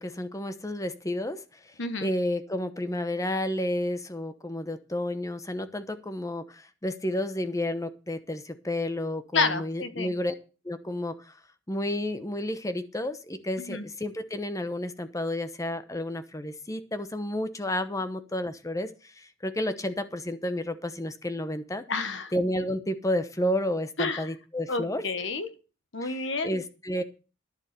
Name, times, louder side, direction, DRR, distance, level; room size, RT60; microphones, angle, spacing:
voice 1, 0.0-1.7 2.0-10.3 10.6-11.4 11.7-21.8 22.3-25.0 26.0-27.0, left 1 dB, 15° left, 10 dB, 0.9 m, -31 dB
voice 2, 9.3-10.1 13.6-13.8 21.9-22.3 24.0-24.3 24.7-25.5 25.9-26.6, left 4 dB, 65° left, 11 dB, 1.4 m, -29 dB
11.0 x 7.2 x 6.8 m, 0.33 s
head